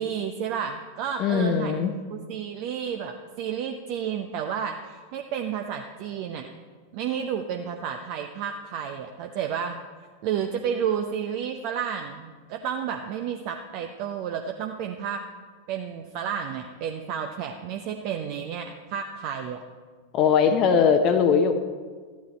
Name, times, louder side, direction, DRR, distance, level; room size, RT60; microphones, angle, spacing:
voice 1, 0.0-1.8 2.1-6.5 6.9-9.8 10.2-15.2 15.7-19.6, right 8 dB, 45° right, 5 dB, 0.6 m, -31 dB
voice 2, 1.2-2.0 20.1-21.5, left 6 dB, 35° left, 7 dB, 0.8 m, -20 dB
12.5 x 9.5 x 4.2 m, 1.5 s
figure-of-eight pair, 90°, 0 cm